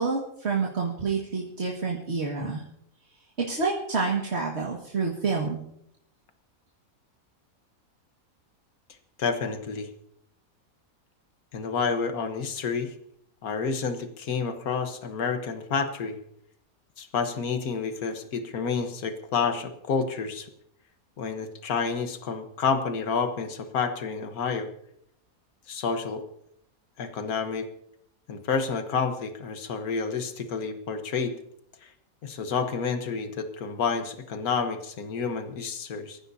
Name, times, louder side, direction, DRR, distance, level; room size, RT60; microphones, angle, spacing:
voice 1, 0.0-2.6 3.4-5.6, right 4 dB, 50° right, -2 dB, 2.1 m, -28 dB
voice 2, 9.2-9.9 11.5-12.9 13.4-16.2 17.0-20.5 21.2-24.7 25.7-26.2 27.0-27.7 28.3-31.4 31.8-31.9 32.2-36.2, left 5 dB, 85° left, 7 dB, 1.7 m, -29 dB
24.0 x 14.5 x 2.8 m, 0.73 s
omnidirectional pair, 1.5 m